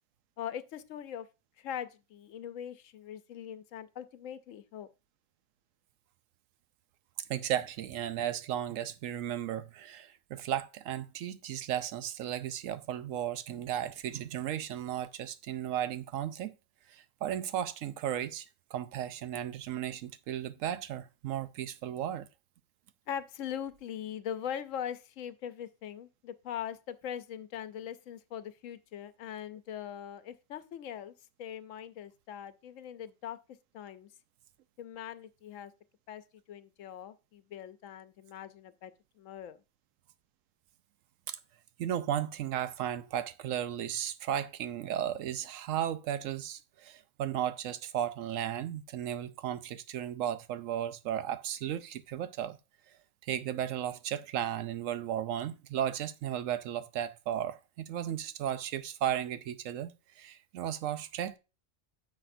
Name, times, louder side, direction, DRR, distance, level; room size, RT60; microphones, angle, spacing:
voice 1, 0.4-1.3 1.6-4.9 23.1-31.1 31.4-33.4 33.7-34.1 34.8-35.7 36.1-39.6, left 9 dB, 85° left, 1.0 m, -41 dB
voice 2, 7.3-16.6 16.9-18.5 18.7-22.3 41.3-41.4 41.8-52.6 53.2-61.4, right 10 dB, 90° right, 1.0 m, -35 dB
9.9 x 6.4 x 2.6 m
omnidirectional pair, 1.3 m